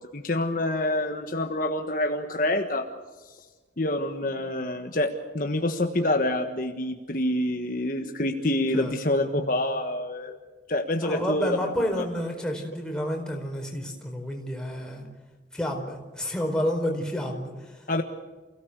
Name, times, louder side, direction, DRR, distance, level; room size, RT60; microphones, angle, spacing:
voice 1, 0.0-2.9 3.8-10.4 10.7-11.6 17.9-18.0, left 1 dB, 45° left, 4 dB, 1.5 m, -27 dB
voice 2, 11.0-15.1 15.5-17.8, equal, 5° left, 1 dB, 4.5 m, -30 dB
29.0 x 17.5 x 8.2 m, 1.3 s
head